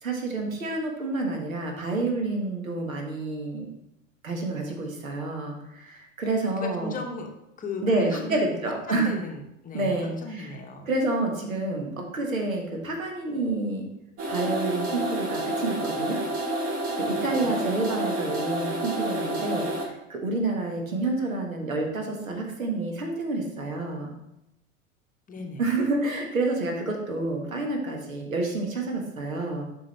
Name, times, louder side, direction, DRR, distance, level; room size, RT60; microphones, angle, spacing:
voice 1, 0.0-3.7 4.2-7.0 7.8-9.1 9.7-10.5 10.9-13.9 14.3-16.2 16.9-24.1 25.6-29.6, right 2 dB, 80° right, 1 dB, 1.5 m, -29 dB
voice 2, 6.2-7.3 7.6-8.4 8.9-10.9 17.2-17.6 25.3-25.7, left 2 dB, 20° left, 2 dB, 0.9 m, -36 dB
sound 1, 14.2-19.8, right 1 dB, 35° right, 1.9 m, -29 dB
7.3 x 5.4 x 3.3 m, 0.84 s
figure-of-eight pair, 90°, 40 cm